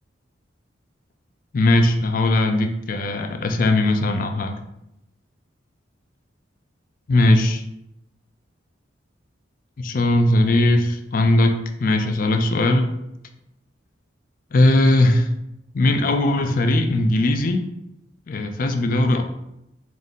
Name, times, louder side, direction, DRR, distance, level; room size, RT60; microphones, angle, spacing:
voice 1, 1.5-4.6 7.1-7.6 9.8-12.9 14.5-15.3 15.7-17.6 18.3-19.3, left 1 dB, 45° left, 6 dB, 0.4 m, -19 dB
3.8 x 2.6 x 3.5 m, 0.85 s
head